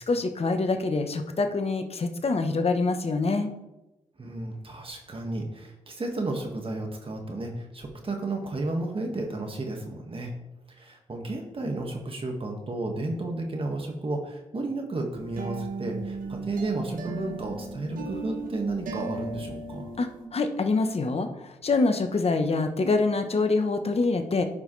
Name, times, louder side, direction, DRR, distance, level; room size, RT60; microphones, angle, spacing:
voice 1, 0.1-3.5 20.0-24.4, left 3 dB, 45° left, 6 dB, 1.1 m, -25 dB
voice 2, 4.2-10.3 10.7-19.9, right 2 dB, 40° right, 2 dB, 1.9 m, -32 dB
sound 1, 15.1-20.3, right 3 dB, 80° right, 1.4 m, -36 dB
13.5 x 5.1 x 3.3 m, 0.98 s
cardioid pair, 65°, 14 cm